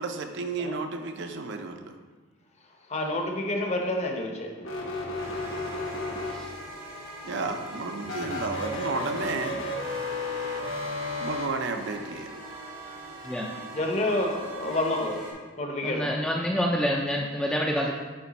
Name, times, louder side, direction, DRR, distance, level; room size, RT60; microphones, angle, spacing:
voice 1, 0.0-1.9 7.2-9.6 11.2-12.3, right 3 dB, 60° right, 6 dB, 0.6 m, -32 dB
voice 2, 2.9-4.5 13.7-15.2 15.6-16.1, left 1 dB, 35° left, 2 dB, 0.8 m, -28 dB
sound 1, 4.6-6.8 8.0-11.5, left 2 dB, 80° left, 1.1 m, -33 dB
sound 2, 5.2-15.3, right 1 dB, 85° right, 1.8 m, -42 dB
voice 3, 15.8-17.9, equal, 5° left, -1 dB, 0.4 m, -27 dB
8.8 x 3.5 x 4.1 m, 1.3 s
head